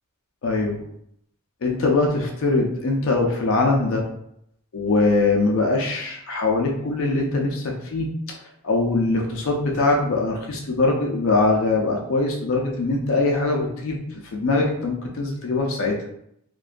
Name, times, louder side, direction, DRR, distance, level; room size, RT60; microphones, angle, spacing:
voice 1, 0.4-0.8 1.6-4.0 4.7-8.1 8.6-16.0, left 3 dB, 65° left, 0 dB, 0.4 m, -22 dB
2.5 x 2.1 x 2.4 m, 0.74 s
head